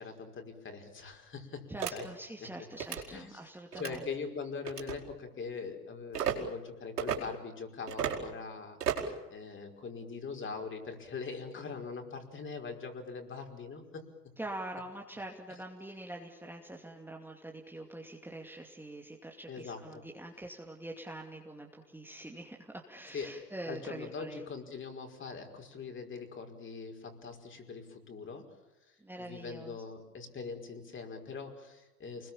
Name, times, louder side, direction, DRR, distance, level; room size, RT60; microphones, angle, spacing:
voice 1, 0.0-2.0 3.1-3.4 3.8-8.8 9.3-14.0 19.5-20.0 23.1-23.3 23.7-28.5 28.9-32.3, left 5 dB, 25° left, 4 dB, 5.3 m, -42 dB
voice 2, 1.7-4.0 14.4-24.4 29.0-29.8, right 1 dB, 5° right, 1 dB, 2.6 m, -44 dB
sound 1, 1.8-1.9 2.7-3.0 3.7-4.0 4.6-5.0 6.1-6.3 7.0-7.2 7.9-8.2 8.8-9.1, right 8 dB, 75° right, 4.9 m, -33 dB
29.5 x 21.5 x 7.3 m, 1.0 s
hypercardioid pair, 90°, 47 cm